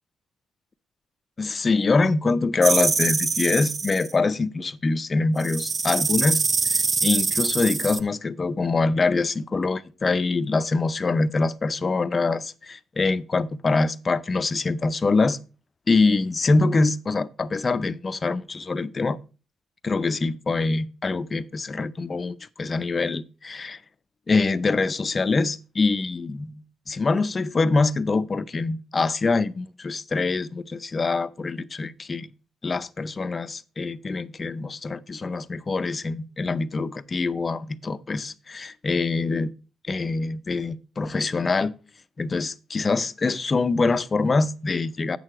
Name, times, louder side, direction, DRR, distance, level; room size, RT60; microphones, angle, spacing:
voice 1, 1.4-15.4 15.9-19.2 19.8-23.8 24.3-32.3 32.6-39.5 39.9-41.7 42.2-45.2, left 3 dB, 30° left, 0.5 m, -24 dB
sound 1, 2.6-4.1 5.4-8.0, right 4 dB, 35° right, 0.6 m, -24 dB
8.3 x 6.4 x 4.9 m
cardioid pair, 90°, 0 cm